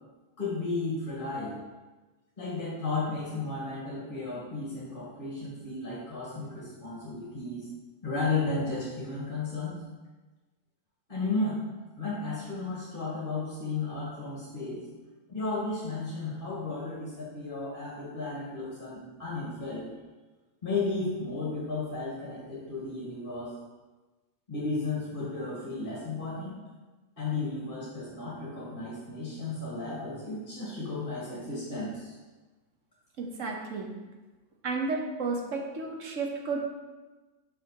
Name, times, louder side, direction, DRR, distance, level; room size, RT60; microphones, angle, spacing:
voice 1, 0.4-1.6 2.4-7.7 8.0-9.8 11.1-11.6 12.0-14.9 15.3-19.9 20.6-23.6 24.5-26.6 27.2-32.1, left 3 dB, 35° left, -7 dB, 1.8 m, -34 dB
voice 2, 33.2-33.9 34.6-36.7, right 4 dB, 60° right, 1 dB, 1.3 m, -32 dB
6.3 x 6.1 x 4.8 m, 1.2 s
omnidirectional pair, 1.5 m